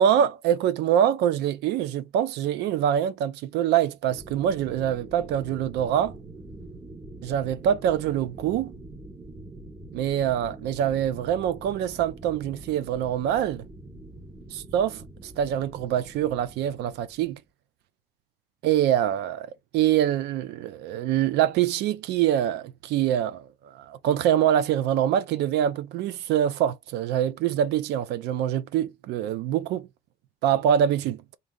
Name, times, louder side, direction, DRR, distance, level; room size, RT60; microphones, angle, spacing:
voice 1, 0.0-6.1 7.2-8.7 9.9-13.6 14.5-17.4 18.6-19.5 19.7-23.4 23.7-29.9 30.4-31.2, right 10 dB, 80° right, 0.5 m, -24 dB
sound 1, 4.1-17.4, right 2 dB, 20° right, 1.1 m, -44 dB
3.7 x 2.7 x 3.7 m
cardioid pair, 110°, 17 cm